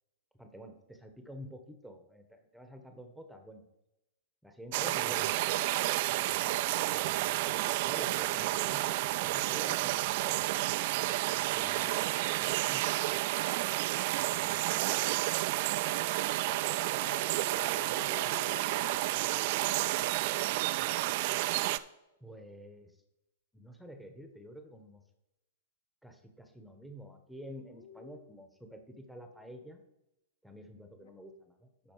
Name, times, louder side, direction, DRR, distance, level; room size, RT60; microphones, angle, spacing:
voice 1, 0.4-3.6 4.4-5.6 7.8-10.5 11.5-12.9 14.2-14.7 22.2-22.9 23.5-25.0 26.0-29.8 30.4-31.9, equal, ahead, 6 dB, 1.0 m, -49 dB
sound 1, 4.7-21.8, right 17 dB, 50° right, 0.4 m, -31 dB
voice 2, 6.3-7.2 11.5-12.2 14.3-15.0 16.4-19.0 19.6-20.1 27.7-28.3 31.0-31.1, left 5 dB, 70° left, 7 dB, 1.2 m, -51 dB
12.0 x 4.2 x 4.6 m, 0.90 s
hypercardioid pair, 115°, 0 cm